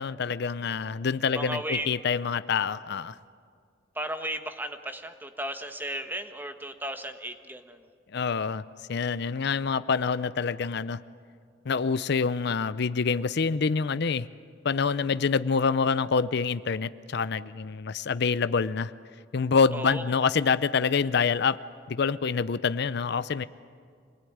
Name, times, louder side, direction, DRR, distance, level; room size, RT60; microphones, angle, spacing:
voice 1, 0.0-3.2 8.1-8.6 8.9-11.0 11.7-14.3 14.6-18.9 19.3-21.6 21.9-23.5, left 5 dB, 60° left, 15 dB, 0.6 m, -26 dB
voice 2, 1.3-1.9 3.9-7.8 19.7-20.0, right 1 dB, 10° right, 7 dB, 1.3 m, -35 dB
26.0 x 20.0 x 9.4 m, 2.1 s
head